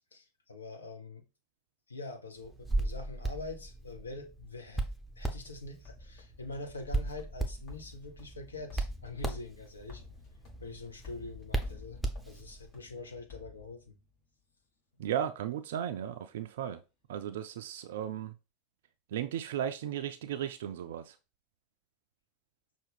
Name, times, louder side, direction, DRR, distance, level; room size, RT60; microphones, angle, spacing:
voice 1, 0.1-1.2 1.9-4.9 5.2-10.0 10.6-13.9, left 2 dB, 75° left, 0.8 m, -44 dB
Hands, 2.4-12.7, right 2 dB, 5° right, 0.7 m, -37 dB
sound 1, 5.4-14.2, left 6 dB, 45° left, 1.5 m, -53 dB
voice 2, 15.0-16.8 17.1-18.3 19.1-21.2, right 10 dB, 60° right, 0.3 m, -35 dB
5.7 x 2.4 x 3.4 m
figure-of-eight pair, 80°, 0 cm